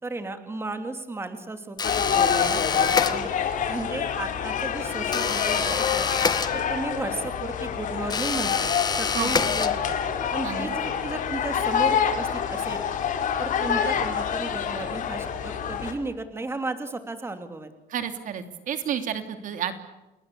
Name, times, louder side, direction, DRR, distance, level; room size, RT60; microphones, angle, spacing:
voice 1, 0.0-3.3 3.7-6.2 6.5-8.7 9.0-10.0 10.3-12.8 13.4-17.7, right 2 dB, 15° right, 8 dB, 3.0 m, -34 dB
sound 1, 1.8-15.9, left 8 dB, 55° left, 4.6 m, -27 dB
sound 2, 1.8-3.6 5.1-7.0 8.1-10.1, left 5 dB, 25° left, 1.9 m, -27 dB
voice 2, 9.1-9.5 10.4-10.7 17.9-19.8, right 8 dB, 60° right, 9 dB, 3.0 m, -31 dB
29.5 x 20.5 x 8.6 m, 1.0 s
cardioid pair, 135°, 16 cm